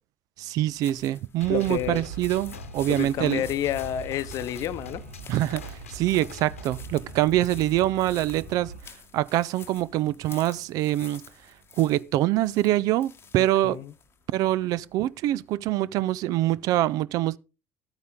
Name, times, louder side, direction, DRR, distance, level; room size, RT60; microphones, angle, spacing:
voice 1, 0.4-3.4 5.3-8.7 9.1-11.2 11.8-13.8 14.3-17.4, right 14 dB, 55° right, 0.4 m, -25 dB
sound 1, 0.7-15.5, left 7 dB, 35° left, 1.0 m, -50 dB
Gunshot gunfire, 1.4-6.9, left 6 dB, 85° left, 1.0 m, -48 dB
sound 2, 1.4-8.8, right 3 dB, 85° right, 2.3 m, -41 dB
voice 2, 1.5-2.0 2.9-5.0 13.4-13.9, left 11 dB, 55° left, 0.7 m, -30 dB
12.0 x 9.3 x 3.7 m
figure-of-eight pair, 60°, 7 cm